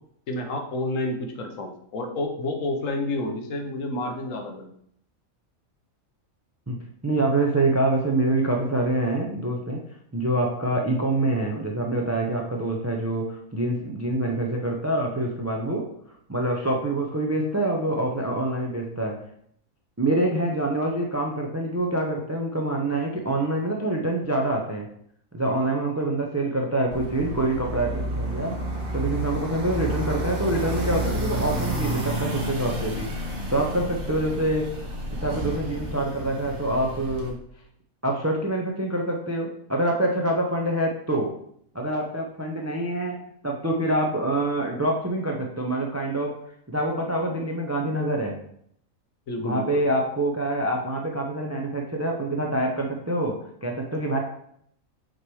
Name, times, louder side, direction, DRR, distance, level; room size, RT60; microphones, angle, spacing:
voice 1, 0.3-4.7 49.3-49.8, left 2 dB, 65° left, 4 dB, 1.2 m, -29 dB
voice 2, 7.0-9.8 10.1-15.9 16.3-19.1 20.0-24.9 25.3-28.6 28.9-33.1 33.5-34.7 35.1-37.4 38.0-41.3 41.7-43.2 43.4-46.3 46.7-48.3 49.4-53.3 53.6-54.2, right 1 dB, 20° right, 1 dB, 0.4 m, -26 dB
sound 1, 26.9-37.3, right 1 dB, 75° right, 1.8 m, -30 dB
6.4 x 3.1 x 4.7 m, 0.68 s
omnidirectional pair, 1.5 m